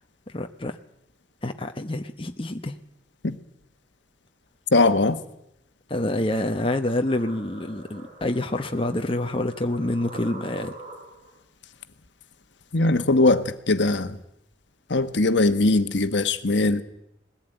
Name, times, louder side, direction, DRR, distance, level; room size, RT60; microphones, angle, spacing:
voice 1, 0.3-0.8 1.4-2.7 5.9-10.7, left 1 dB, 30° left, 0.9 m, -27 dB
voice 2, 4.7-5.2 12.7-14.2 14.9-16.8, left 2 dB, 70° left, 1.2 m, -20 dB
sound 1, 6.3-11.4, right 2 dB, 40° right, 5.4 m, -44 dB
20.0 x 15.0 x 9.1 m
head